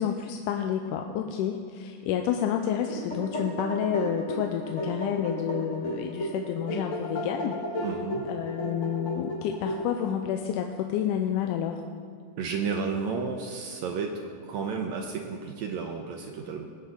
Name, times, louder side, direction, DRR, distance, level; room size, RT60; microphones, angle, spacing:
voice 1, 0.0-7.6 8.3-11.8, left 9 dB, 80° left, 4 dB, 2.1 m, -29 dB
sound 1, 2.7-10.2, equal, 60° left, 0.7 m, -33 dB
voice 2, 7.8-8.2 12.4-16.6, right 5 dB, 75° right, 3 dB, 1.7 m, -32 dB
19.5 x 8.3 x 3.8 m, 2.1 s
omnidirectional pair, 3.7 m